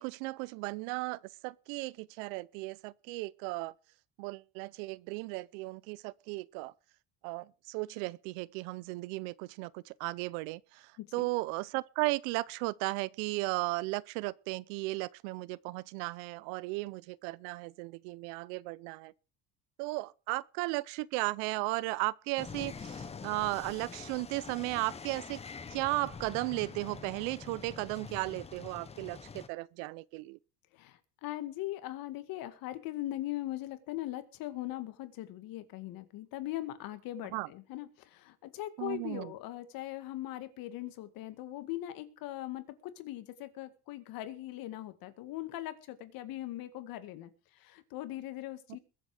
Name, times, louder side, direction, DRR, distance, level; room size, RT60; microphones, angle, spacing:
voice 1, 0.0-3.7 4.2-6.7 7.2-10.6 11.1-19.1 19.8-25.4 25.7-30.4 37.3-37.5 38.8-39.3, right 22 dB, 90° right, 0.8 m, -35 dB
voice 2, 11.0-11.3 30.7-48.8, left 15 dB, 60° left, 2.0 m, -40 dB
sound 1, 22.4-29.5, left 5 dB, 15° left, 0.9 m, -45 dB
21.5 x 7.9 x 4.9 m
cardioid pair, 150°, 39 cm